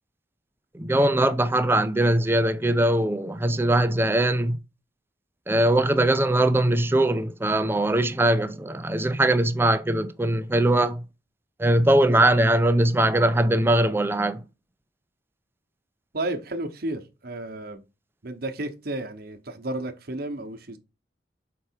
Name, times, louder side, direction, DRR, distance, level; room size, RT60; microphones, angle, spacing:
voice 1, 0.7-4.6 5.5-11.0 11.6-14.4, right 1 dB, 15° right, 0.5 m, -21 dB
voice 2, 16.1-17.8 18.2-20.8, right 1 dB, 60° right, 1.0 m, -32 dB
6.0 x 4.7 x 4.5 m
head